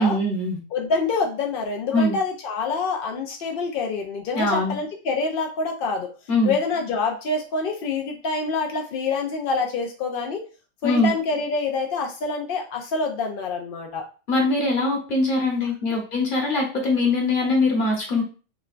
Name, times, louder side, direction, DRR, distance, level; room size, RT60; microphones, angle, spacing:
voice 1, 0.0-0.6 1.9-2.2 4.3-4.8 6.3-6.5 10.8-11.1 14.3-18.2, left 2 dB, 40° left, -1 dB, 1.1 m, -22 dB
voice 2, 0.7-6.1 6.4-10.4 10.8-14.0, left 4 dB, 70° left, 2 dB, 0.5 m, -26 dB
5.8 x 2.2 x 2.4 m, 0.36 s
omnidirectional pair, 1.5 m